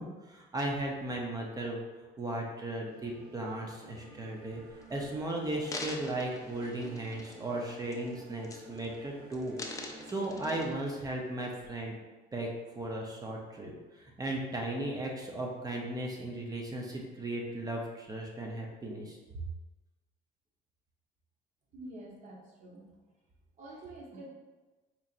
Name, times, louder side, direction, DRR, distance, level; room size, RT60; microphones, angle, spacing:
voice 1, 0.0-1.8 2.2-4.6 4.9-12.0 12.3-19.2, right 1 dB, 20° right, -1 dB, 0.7 m, -36 dB
sound 1, 2.9-10.7, right 1 dB, 80° right, 1.3 m, -51 dB
sound 2, 4.8-4.9 5.4-7.5 7.9-8.1 8.4-9.0 9.3-11.0 11.6-11.7, left 2 dB, 20° left, 0.4 m, -44 dB
voice 2, 21.7-22.9 23.6-24.3, right 1 dB, 45° right, -3 dB, 1.0 m, -47 dB
4.4 x 2.8 x 2.5 m, 1.2 s
cardioid pair, 110°, 17 cm